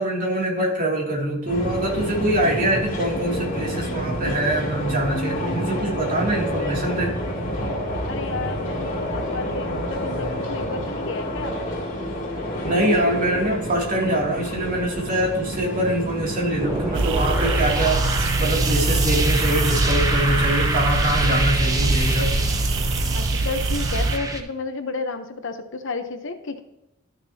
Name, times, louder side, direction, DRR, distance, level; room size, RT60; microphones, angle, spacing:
voice 1, 0.0-7.1 12.6-22.3, right 1 dB, 45° right, -2 dB, 2.8 m, -24 dB
sound 1, 1.5-17.0, equal, 40° left, 2.7 m, -28 dB
voice 2, 8.1-11.6 23.1-26.6, left 3 dB, 65° left, 7 dB, 0.9 m, -32 dB
sound 2, 16.6-24.4, right 1 dB, 15° right, 1.0 m, -25 dB
sound 3, 16.9-24.2, right 3 dB, 60° right, 0.5 m, -24 dB
13.0 x 6.6 x 2.9 m, 0.89 s
head